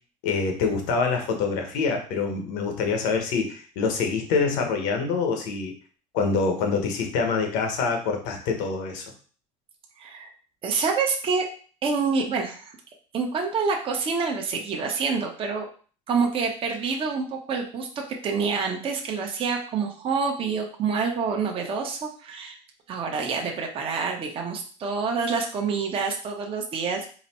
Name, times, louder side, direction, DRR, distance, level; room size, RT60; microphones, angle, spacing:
voice 1, 0.2-5.7 6.1-9.0, left 4 dB, 75° left, 3 dB, 1.1 m, -25 dB
voice 2, 10.0-10.3 10.6-11.4 11.8-12.7 13.1-15.6 16.1-17.9 18.2-22.6 22.9-27.0, right 5 dB, 35° right, 1 dB, 0.9 m, -27 dB
4.0 x 2.2 x 4.2 m, 0.41 s
supercardioid pair, 120°, 16 cm